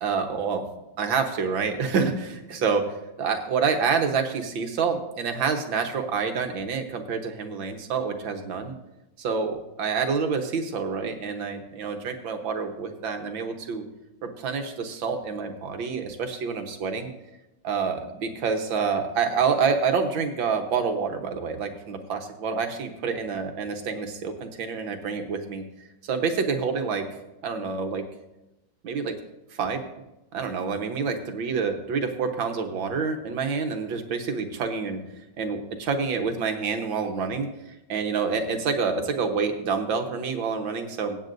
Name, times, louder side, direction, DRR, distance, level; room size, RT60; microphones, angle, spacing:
voice 1, 0.0-0.6 1.0-2.8 3.2-8.7 9.2-13.8 14.4-17.1 17.6-25.6 26.0-27.0 27.4-28.0 28.8-29.1 29.6-29.8 30.3-35.0 35.4-37.5 37.9-41.2, right 5 dB, 80° right, 5 dB, 1.9 m, -27 dB
23.5 x 8.9 x 2.6 m, 0.96 s
omnidirectional pair, 2.1 m